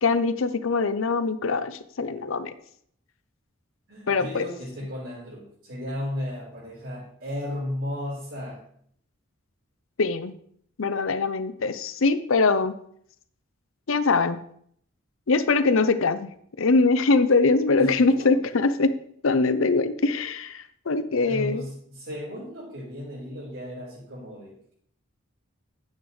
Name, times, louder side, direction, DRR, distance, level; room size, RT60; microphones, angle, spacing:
voice 1, 0.0-2.5 4.1-4.4 10.0-10.3 10.8-12.7 13.9-14.4 15.3-16.3 16.6-18.9 19.2-21.6, left 3 dB, 80° left, 12 dB, 0.7 m, -22 dB
voice 2, 3.9-8.6 17.8-18.4 21.2-24.7, left 1 dB, 70° right, -8 dB, 4.4 m, -35 dB
10.0 x 8.6 x 3.3 m, 0.64 s
head